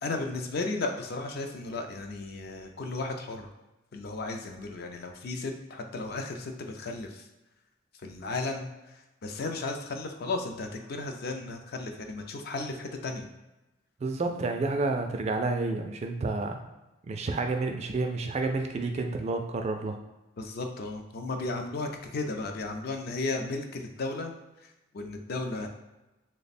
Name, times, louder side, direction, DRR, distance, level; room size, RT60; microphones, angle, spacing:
voice 1, 0.0-3.5 3.9-7.3 8.0-13.3 20.4-24.3 24.6-25.7, left 3 dB, 50° left, 4 dB, 0.4 m, -34 dB
voice 2, 14.0-16.6 17.0-20.0, right 3 dB, 30° right, 5 dB, 0.3 m, -30 dB
3.2 x 2.1 x 4.1 m, 1.0 s
head